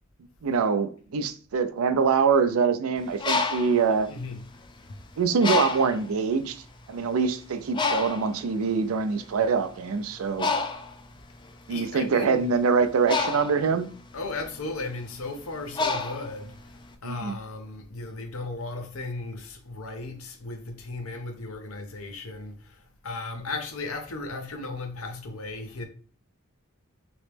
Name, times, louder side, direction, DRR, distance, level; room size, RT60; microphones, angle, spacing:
voice 1, 0.4-4.1 5.2-6.6 6.9-10.5 11.7-13.9 17.0-17.3, right 5 dB, 75° right, 0.4 m, -24 dB
Bird, 3.0-4.9 5.4-6.1 6.8-6.9 7.2-16.9, left 4 dB, 20° left, 0.3 m, -30 dB
voice 2, 4.1-4.4 11.7-12.5 14.1-25.9, left 3 dB, 75° left, 0.8 m, -36 dB
3.0 x 3.0 x 3.3 m
head